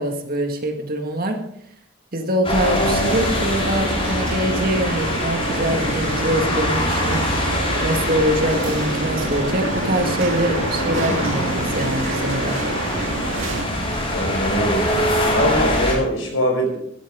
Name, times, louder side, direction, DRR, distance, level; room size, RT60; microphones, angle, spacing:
voice 1, 0.0-1.4 2.1-7.3 7.8-12.6, right 1 dB, 45° right, 4 dB, 1.9 m, -24 dB
sound 1, 2.4-15.9, left 1 dB, 30° left, 4.6 m, -24 dB
sound 2, 2.8-13.7, right 2 dB, 75° right, 2.1 m, -28 dB
voice 2, 14.1-14.8 15.3-16.8, equal, 75° left, 2 dB, 5.0 m, -22 dB
15.5 x 13.0 x 3.7 m, 0.74 s
head